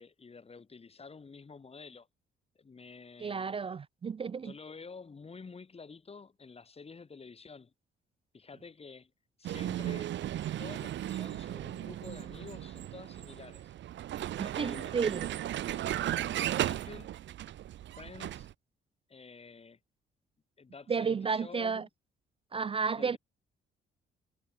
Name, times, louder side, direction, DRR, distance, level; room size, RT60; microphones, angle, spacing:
voice 1, 0.0-2.1 2.5-3.6 4.4-7.7 8.3-9.1 9.4-10.1 10.6-13.7 14.4-15.3 15.6-17.1 18.0-18.5 19.1-19.8 20.6-21.9 23.0-23.2, left 4 dB, 30° left, 2.6 m, -50 dB
voice 2, 3.2-4.5 14.4-15.3 20.9-21.8 22.5-23.2, right 5 dB, 30° right, 0.4 m, -32 dB
Vehicle, 9.4-18.5, right 12 dB, 70° right, 0.9 m, -36 dB
cardioid pair, 90°, 20 cm